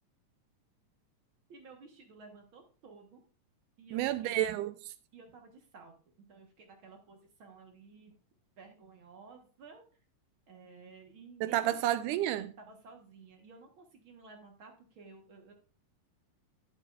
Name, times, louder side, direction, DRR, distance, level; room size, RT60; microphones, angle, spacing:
voice 1, 1.5-3.2 3.8-4.4 5.1-6.0 6.3-8.1 8.6-9.8 10.5-11.8 12.6-15.5, right 4 dB, 55° right, 1.6 m, -54 dB
voice 2, 3.9-4.9 11.4-12.5, right 13 dB, 85° right, 2.1 m, -31 dB
10.5 x 8.5 x 2.4 m
omnidirectional pair, 3.6 m